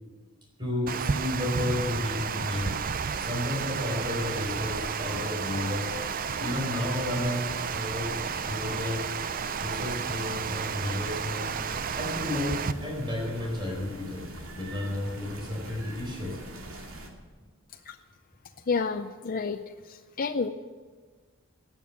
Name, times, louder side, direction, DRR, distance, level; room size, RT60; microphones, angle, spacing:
voice 1, 0.6-2.8 3.2-6.0 6.4-9.0 9.6-11.5 11.9-16.4, left 1 dB, 25° right, -1 dB, 4.4 m, -32 dB
Water, 0.9-12.7, right 6 dB, 45° right, 0.5 m, -32 dB
sound 1, 1.4-17.1, right 1 dB, 80° right, 2.5 m, -43 dB
voice 2, 18.7-19.6 19.8-20.5, left 4 dB, 45° left, 7 dB, 0.5 m, -29 dB
19.0 x 7.3 x 8.5 m, 1.5 s
head